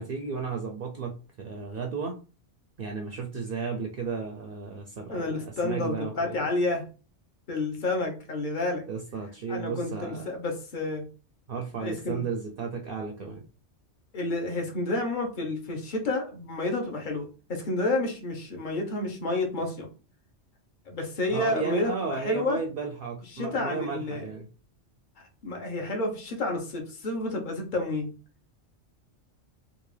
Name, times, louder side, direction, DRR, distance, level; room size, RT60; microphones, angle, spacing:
voice 1, 0.0-2.2 2.8-6.4 8.9-10.3 11.5-13.4 21.3-24.5, right 5 dB, 60° right, 3 dB, 0.6 m, -34 dB
voice 2, 5.1-6.8 7.5-8.8 9.5-11.0 11.8-12.2 14.1-19.9 20.9-22.6 23.3-24.3 25.4-28.1, left 2 dB, 45° left, 2 dB, 1.0 m, -30 dB
3.6 x 2.6 x 3.2 m, 0.35 s
omnidirectional pair, 1.2 m